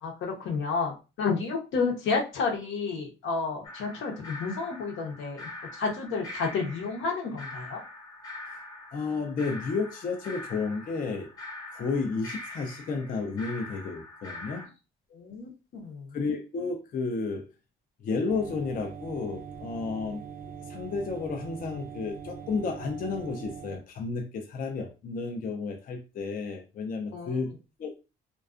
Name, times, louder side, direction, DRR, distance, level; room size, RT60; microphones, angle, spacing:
voice 1, 0.0-7.8 15.1-16.2 27.1-27.4, left 4 dB, 80° left, 0.8 m, -31 dB
sound 1, 3.6-14.7, left 2 dB, 20° left, 0.9 m, -43 dB
voice 2, 8.9-11.3 11.7-14.6 16.1-17.5 18.0-20.2 20.7-27.5 27.8-27.9, left 4 dB, 45° left, 0.4 m, -32 dB
sound 2, 18.3-23.8, right 7 dB, 50° right, 0.4 m, -42 dB
2.4 x 2.2 x 2.4 m
cardioid pair, 90°, 20 cm